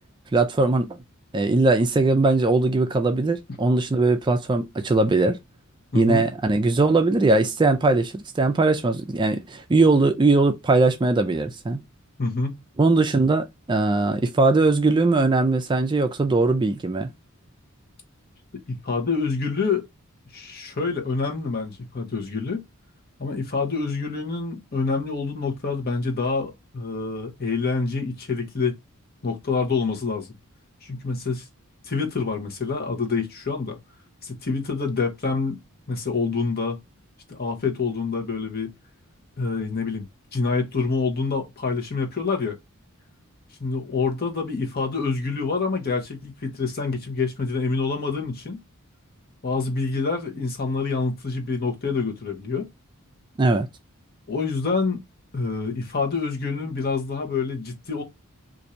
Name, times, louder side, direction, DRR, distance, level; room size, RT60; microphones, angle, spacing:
voice 1, 0.3-1.0 1.3-5.4 5.9-11.8 12.8-17.1 53.4-53.7, right 3 dB, 20° right, 0.3 m, -20 dB
voice 2, 5.9-6.3 12.2-12.6 18.5-19.9 20.3-22.6 23.2-28.7 29.2-30.3 30.8-31.5 31.8-33.8 34.2-35.6 35.9-36.8 37.3-38.7 39.4-40.1 40.3-42.6 43.6-48.6 49.4-52.7 54.3-55.0 55.3-58.0, left 4 dB, 45° left, 1.0 m, -27 dB
2.6 x 2.6 x 4.3 m
head